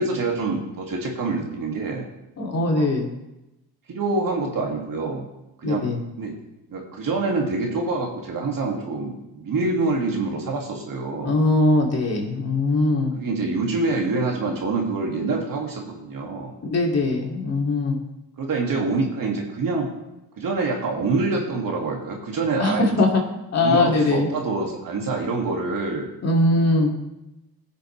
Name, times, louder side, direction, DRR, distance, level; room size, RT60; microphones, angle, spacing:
voice 1, 0.0-2.1 2.7-2.9 3.9-5.3 5.6-5.8 6.2-6.3 6.7-11.4 13.1-16.5 18.4-19.9 20.4-22.9 23.6-26.1, right 3 dB, 50° right, 0 dB, 2.4 m, -26 dB
voice 2, 2.4-3.1 5.6-6.0 11.2-13.1 16.7-18.0 22.6-23.2 23.5-24.3 26.2-26.9, left 2 dB, 35° left, -1 dB, 2.7 m, -21 dB
17.0 x 6.7 x 3.3 m, 0.94 s
supercardioid pair, 85°, 41 cm